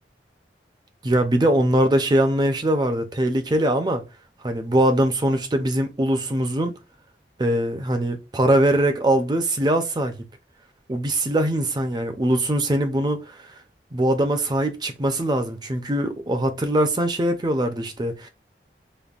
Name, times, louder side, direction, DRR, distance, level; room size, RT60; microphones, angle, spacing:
voice 1, 1.0-4.0 4.4-6.8 7.4-10.1 10.9-13.5 13.9-18.3, right 1 dB, 25° right, 0.5 m, -22 dB
5.2 x 2.1 x 2.4 m
head